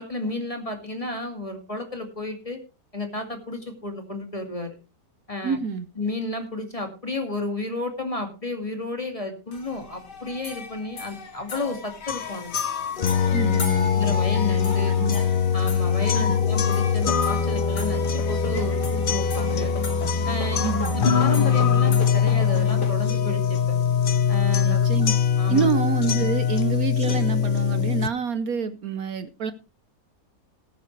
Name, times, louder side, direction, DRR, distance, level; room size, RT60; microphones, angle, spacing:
voice 1, 0.0-2.6 2.9-4.8 5.3-5.6 6.0-12.6 14.0-14.9 15.5-19.7 20.3-23.8 24.3-24.9 25.4-25.7, left 2 dB, 20° left, 5 dB, 2.2 m, -32 dB
voice 2, 5.4-5.9 13.3-14.2 14.9-15.3 16.1-16.4 20.6-21.0 24.6-25.1 25.5-29.5, right 6 dB, 65° right, 11 dB, 1.2 m, -27 dB
sound 1, 9.5-22.9, left 5 dB, 75° left, 2.7 m, -35 dB
sound 2, 12.1-28.1, left 7 dB, 50° left, 0.6 m, -22 dB
18.5 x 9.3 x 3.2 m, 0.30 s
omnidirectional pair, 1.8 m